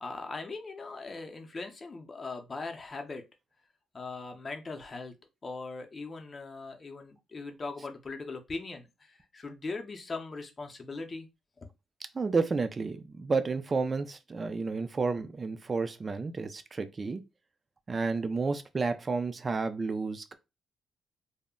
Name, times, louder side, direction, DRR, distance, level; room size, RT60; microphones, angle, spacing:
voice 1, 0.0-3.2 3.9-5.1 5.4-11.3, left 3 dB, 35° left, 0.6 m, -40 dB
voice 2, 12.1-17.2 17.9-20.3, right 4 dB, 30° right, 0.4 m, -31 dB
2.1 x 2.1 x 3.6 m
cardioid pair, 90°, 0 cm